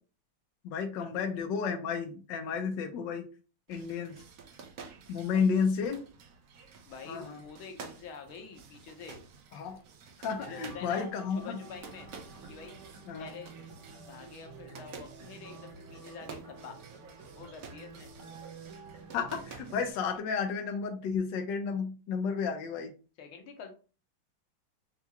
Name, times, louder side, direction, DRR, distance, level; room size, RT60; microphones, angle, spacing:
voice 1, 0.6-3.3 3.7-4.2 5.1-6.0 7.1-7.4 9.5-9.8 10.2-11.6 13.1-13.3 19.1-22.9, left 6 dB, 70° left, 3 dB, 1.4 m, -32 dB
sound 1, 3.7-20.2, right 5 dB, 65° right, 0.8 m, -51 dB
voice 2, 5.3-5.6 6.8-9.2 10.4-11.1 11.4-12.1 12.5-12.8 13.2-13.5 14.0-16.8 17.4-18.1 23.2-23.7, left 6 dB, 85° left, 4 dB, 1.7 m, -47 dB
sound 2, 10.3-19.9, right 4 dB, 45° right, 1.3 m, -50 dB
6.8 x 2.3 x 2.9 m, 0.35 s
omnidirectional pair, 2.2 m